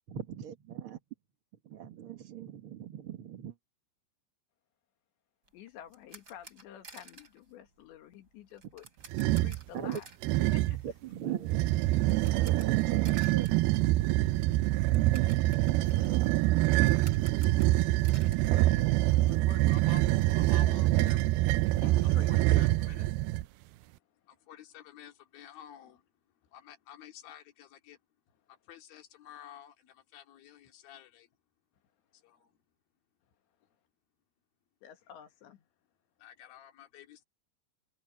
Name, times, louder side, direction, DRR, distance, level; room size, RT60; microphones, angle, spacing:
voice 1, 0.1-1.0 1.6-3.5 9.7-10.0 10.8-14.3, right 10 dB, 70° right, 1.3 m, -39 dB
voice 2, 5.5-8.9 9.2-10.1 10.5-10.9 15.6-16.9 18.5-18.9 19.2-19.8 20.6-20.8 21.8-22.7 34.8-35.7, left 10 dB, 90° left, 4.3 m, -50 dB
sound 1, 5.5-19.4 19.7-19.8 20.2-20.3 20.6-22.1, right 3 dB, 20° right, 5.2 m, -55 dB
sound 2, 9.1-9.6 10.2-10.9 11.4-23.5, right 18 dB, 85° right, 2.2 m, -26 dB
voice 3, 19.7-20.1 20.4-21.3 22.0-23.2 24.3-26.0 26.5-28.0 28.5-31.3 32.1-32.6 36.2-37.2, left 10 dB, 60° left, 4.1 m, -51 dB
omnidirectional pair, 5.0 m